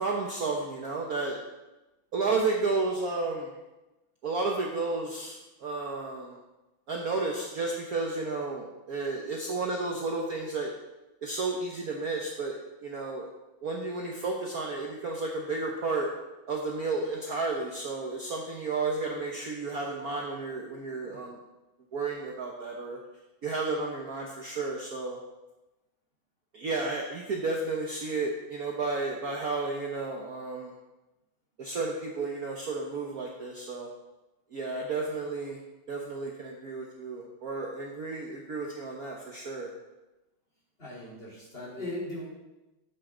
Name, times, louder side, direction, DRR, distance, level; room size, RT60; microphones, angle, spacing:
voice 1, 0.0-1.4 2.1-3.5 4.2-6.4 6.9-10.7 11.2-13.3 13.6-16.1 16.5-21.4 21.9-23.0 23.4-25.2 26.5-30.7 31.6-33.9 34.5-35.6 35.9-39.7, right 3 dB, 50° right, 0 dB, 1.3 m, -32 dB
voice 2, 40.8-42.3, left 1 dB, 25° left, -7 dB, 3.6 m, -38 dB
12.5 x 8.3 x 3.9 m, 1.0 s
omnidirectional pair, 2.4 m